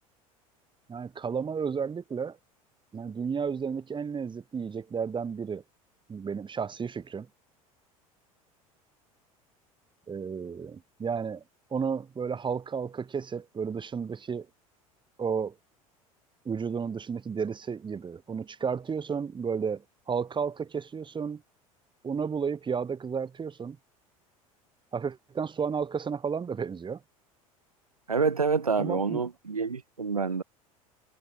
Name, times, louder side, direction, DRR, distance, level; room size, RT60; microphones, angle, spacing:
voice 1, 0.9-2.4 2.9-5.6 6.1-7.3 10.1-11.4 11.7-14.5 15.2-15.5 16.4-21.4 22.0-23.8 24.9-27.0 28.8-29.2, right 6 dB, 25° right, 5.9 m, -32 dB
voice 2, 28.1-30.4, right 5 dB, 90° right, 0.9 m, -27 dB
figure-of-eight pair, 70°, 18 cm